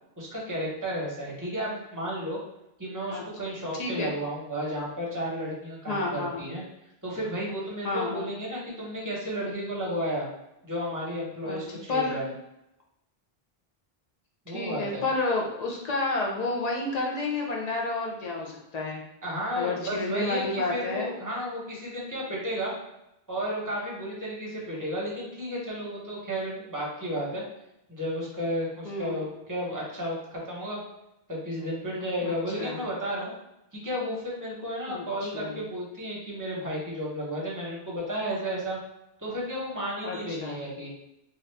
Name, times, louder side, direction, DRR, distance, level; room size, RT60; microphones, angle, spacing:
voice 1, 0.2-2.4 2.8-6.6 7.0-10.3 10.6-12.3 14.5-15.1 19.2-22.7 23.3-27.4 27.9-30.8 31.3-33.3 33.7-38.8 39.2-40.9, equal, 20° right, -5 dB, 0.8 m, -33 dB
voice 2, 3.8-4.1 5.9-6.4 7.8-8.3 11.4-11.6 11.9-12.2 14.5-19.0 19.6-21.1 28.8-29.3 32.2-32.9 34.9-35.5 40.0-40.6, left 2 dB, 45° left, -1 dB, 0.7 m, -30 dB
2.7 x 2.5 x 3.3 m, 0.87 s
omnidirectional pair, 1.0 m